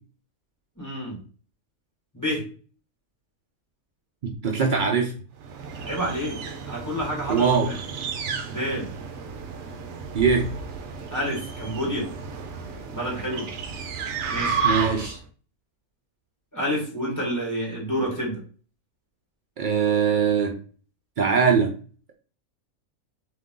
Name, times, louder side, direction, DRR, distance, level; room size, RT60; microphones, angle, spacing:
voice 1, 0.8-1.2 2.1-2.4 5.8-6.4 6.7-7.8 8.5-8.9 11.1-12.1 12.9-13.5 14.3-14.6 16.5-18.4, equal, 10° left, -4 dB, 1.9 m, -28 dB
voice 2, 4.2-5.1 7.3-7.7 10.1-10.5 14.6-15.2 19.6-20.6 21.2-21.7, right 6 dB, 85° right, 2 dB, 0.4 m, -21 dB
sound 1, 5.4-15.2, right 5 dB, 65° right, 0.8 m, -32 dB
3.8 x 2.9 x 3.6 m, 0.40 s
omnidirectional pair, 1.5 m